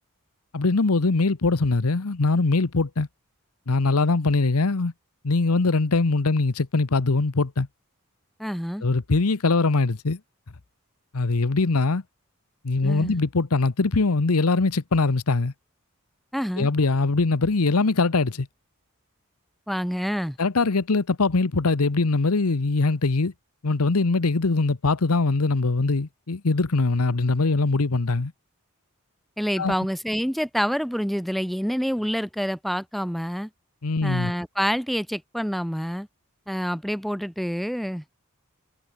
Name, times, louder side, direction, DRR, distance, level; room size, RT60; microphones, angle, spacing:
voice 1, 0.5-3.1 3.7-4.9 5.2-7.7 8.8-10.2 11.1-12.0 12.6-15.5 16.6-18.5 20.4-23.3 23.6-28.3 29.6-29.7 33.8-34.3, left 3 dB, 85° left, 1.0 m, -22 dB
voice 2, 8.4-8.8 12.8-13.2 16.3-16.7 19.7-20.4 29.4-33.5 34.0-36.1 36.5-38.0, equal, ahead, 2.2 m, -27 dB
head